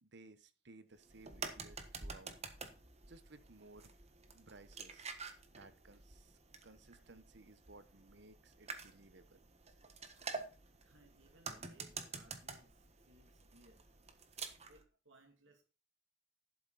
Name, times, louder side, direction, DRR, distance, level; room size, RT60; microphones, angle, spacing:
voice 1, 0.0-2.4 3.1-3.9 4.3-5.1 5.5-9.4, right 2 dB, 60° right, 1.1 m, -59 dB
sound 1, 1.0-14.8, right 4 dB, 35° right, 1.4 m, -49 dB
voice 2, 10.8-13.8 14.7-15.6, right 2 dB, 85° right, 2.6 m, -65 dB
11.5 x 8.2 x 4.1 m
head